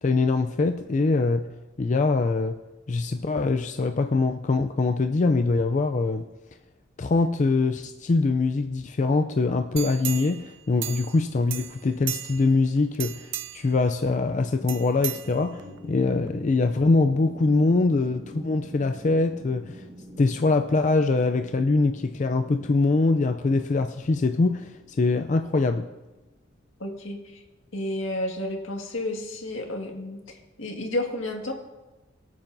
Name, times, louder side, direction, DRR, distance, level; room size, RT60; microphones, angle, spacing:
voice 1, 0.0-1.5 1.8-2.6 2.9-6.3 7.0-19.8 20.2-25.9, left 3 dB, 40° left, 7 dB, 0.4 m, -23 dB
sound 1, 9.8-11.2 11.5-12.6 12.9-13.7 14.7-15.8 16.3-16.4, right 14 dB, 65° right, 0.4 m, -35 dB
sound 2, 14.4-26.5, equal, 35° right, 1.4 m, -46 dB
voice 2, 26.8-27.4 27.7-31.5, left 1 dB, 80° left, 1 dB, 1.9 m, -31 dB
23.5 x 8.9 x 2.7 m, 1.1 s
head